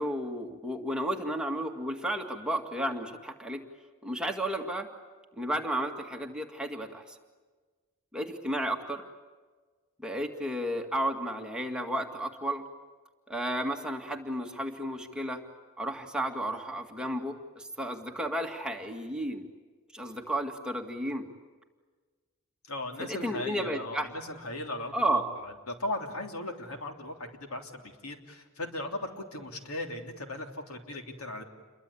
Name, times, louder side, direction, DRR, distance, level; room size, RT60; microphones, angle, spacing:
voice 1, 0.0-3.6 4.0-4.9 5.4-7.2 8.1-9.0 10.0-12.6 13.3-15.4 15.8-19.5 19.9-21.2 23.0-24.1 24.9-25.3, right 1 dB, 5° right, 2 dB, 2.0 m, -32 dB
voice 2, 22.7-31.4, left 1 dB, 75° left, 4 dB, 3.2 m, -38 dB
29.0 x 23.0 x 8.5 m, 1.4 s
head